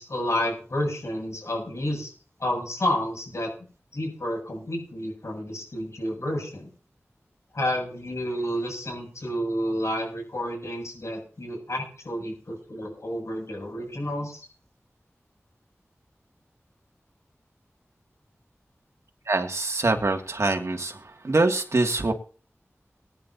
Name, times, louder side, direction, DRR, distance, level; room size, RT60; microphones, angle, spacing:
voice 1, 0.0-2.1 2.4-3.5 3.9-6.7 7.5-14.5, left 1 dB, 75° left, 1 dB, 7.6 m, -30 dB
voice 2, 19.3-21.0 21.2-22.1, right 2 dB, 70° right, 3 dB, 2.4 m, -24 dB
23.0 x 10.5 x 2.9 m, 0.39 s
wide cardioid pair, 55°, 5 cm